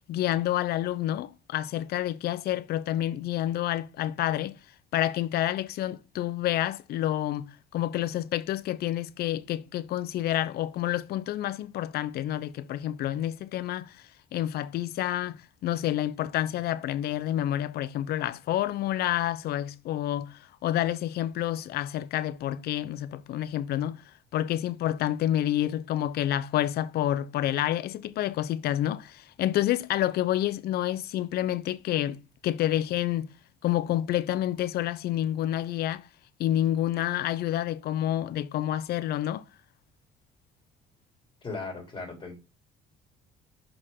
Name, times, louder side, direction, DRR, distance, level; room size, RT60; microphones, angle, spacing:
voice 1, 0.1-4.6 4.9-14.0 14.3-24.0 24.3-33.3 33.6-36.1 36.4-39.4, left 12 dB, 70° left, 0.7 m, -29 dB
voice 2, 41.4-42.4, left 3 dB, 25° left, 3.1 m, -37 dB
6.3 x 5.1 x 3.7 m
cardioid pair, 110°, 17 cm